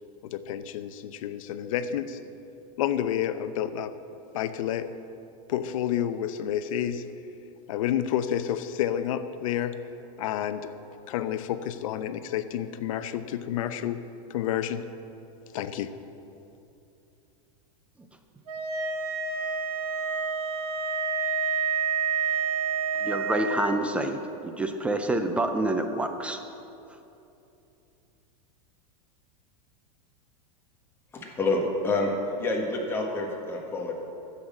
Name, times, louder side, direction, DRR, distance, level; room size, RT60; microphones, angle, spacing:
voice 1, 0.2-2.2 2.8-3.9 4.3-4.9 5.5-7.0 7.7-9.8 10.2-10.8 11.1-14.0 14.3-14.8 15.5-15.9, left 10 dB, 65° left, 11 dB, 0.7 m, -29 dB
sound 1, 18.5-23.6, right 5 dB, 85° right, 1.4 m, -28 dB
voice 2, 23.0-26.4, right 2 dB, 5° right, 6 dB, 0.4 m, -27 dB
voice 3, 31.1-32.1 32.4-33.9, left 2 dB, 10° left, -1 dB, 1.6 m, -28 dB
11.5 x 8.1 x 7.3 m, 2.8 s
supercardioid pair, 160°, 19 cm